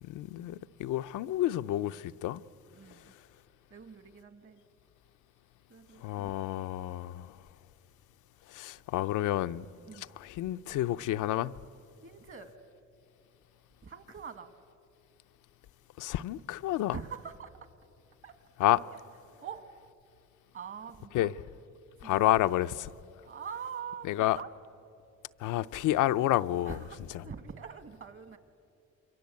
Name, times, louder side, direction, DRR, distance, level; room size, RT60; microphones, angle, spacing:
voice 1, 0.0-2.4 6.0-7.4 8.5-9.7 9.9-11.6 16.0-17.0 18.6-18.8 21.1-21.3 22.0-22.9 24.0-24.4 25.4-26.8 27.1-27.2, left 14 dB, 85° left, 0.6 m, -29 dB
voice 2, 2.7-3.1 3.7-4.6 5.7-6.3 9.9-10.1 12.0-12.5 13.8-14.5 16.9-17.5 18.2-18.3 18.9-19.0 19.4-19.7 20.5-21.3 22.0-22.4 23.2-24.5 26.7-28.4, right 7 dB, 45° right, 1.9 m, -44 dB
28.0 x 23.0 x 8.5 m
cardioid pair, 90°, 30 cm